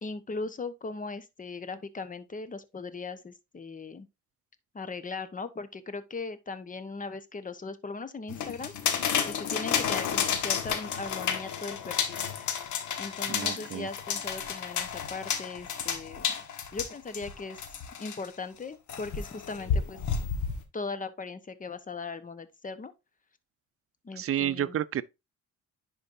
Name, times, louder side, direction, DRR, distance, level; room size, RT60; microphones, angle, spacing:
voice 1, 0.0-4.1 4.7-12.2 13.0-16.4 16.7-17.6 18.0-20.0 20.7-22.9 24.0-24.8, left 3 dB, 25° left, 1.1 m, -39 dB
sound 1, 8.3-18.3 18.9-20.6, left 7 dB, 75° left, 1.4 m, -31 dB
voice 2, 13.3-13.9 24.1-25.0, right 10 dB, 50° right, 0.6 m, -30 dB
10.5 x 4.5 x 2.6 m
cardioid pair, 90°, 30 cm